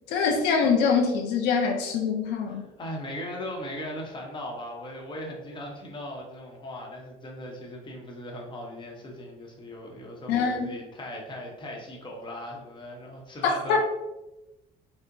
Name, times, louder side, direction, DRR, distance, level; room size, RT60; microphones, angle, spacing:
voice 1, 0.1-2.6 10.3-10.7 13.7-13.8, left 5 dB, 85° left, 2 dB, 0.5 m, -24 dB
voice 2, 2.5-13.8, left 1 dB, 30° left, -1 dB, 0.9 m, -38 dB
4.4 x 2.1 x 2.6 m, 1.0 s
cardioid pair, 110°, 17 cm